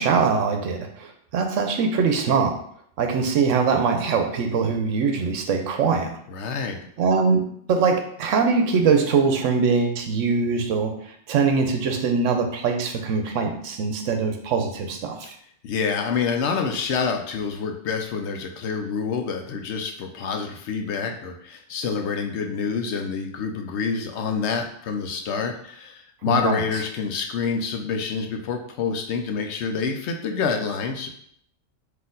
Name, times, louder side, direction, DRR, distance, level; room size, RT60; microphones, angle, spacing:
voice 1, 0.0-2.6 3.0-6.2 7.0-7.4 7.7-15.4 26.3-26.6, right 5 dB, 75° right, 5 dB, 1.0 m, -22 dB
voice 2, 6.3-6.9 15.2-15.3 15.6-31.1, left 5 dB, 65° left, 4 dB, 0.8 m, -27 dB
4.1 x 2.7 x 3.8 m, 0.66 s
omnidirectional pair, 1.3 m